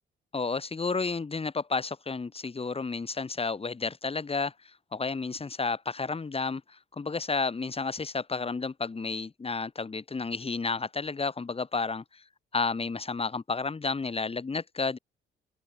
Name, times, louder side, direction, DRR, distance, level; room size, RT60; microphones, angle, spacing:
voice 1, 0.3-4.5 4.9-12.2 12.5-15.0, left 4 dB, 30° left, 5.4 m, -31 dB
open air
cardioid pair, 90°, 20 cm